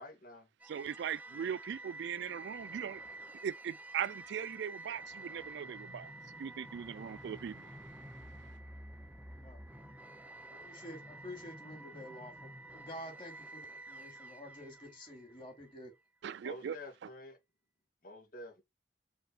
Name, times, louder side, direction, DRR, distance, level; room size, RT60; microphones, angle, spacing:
voice 1, 0.0-0.5 16.4-17.4 18.0-18.6, left 1 dB, 50° left, 2.3 m, -48 dB
sound 1, 0.6-15.7, right 2 dB, 10° right, 0.7 m, -49 dB
voice 2, 0.7-3.0 3.4-6.1 6.4-7.7 16.2-16.8, right 8 dB, 65° right, 0.3 m, -39 dB
voice 3, 10.5-15.9, left 1 dB, 25° left, 3.1 m, -49 dB
5.2 x 4.3 x 4.2 m
head